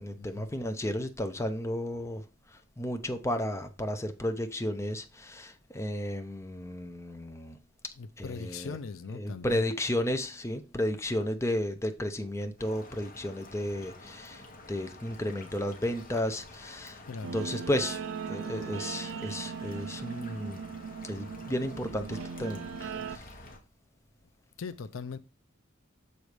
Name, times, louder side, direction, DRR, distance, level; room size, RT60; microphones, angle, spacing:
voice 1, 0.0-2.2 2.8-7.6 8.2-8.8 9.1-14.4 14.7-17.0 17.3-18.0 18.3-20.6 21.0-23.2, left 1 dB, 15° left, 0.6 m, -33 dB
voice 2, 8.0-9.6 17.1-17.4 24.6-25.2, left 4 dB, 75° left, 0.5 m, -40 dB
sound 1, 12.6-23.6, left 2 dB, 45° left, 1.3 m, -49 dB
Guitar, 17.2-23.2, right 6 dB, 65° right, 0.4 m, -39 dB
6.6 x 4.1 x 4.8 m
head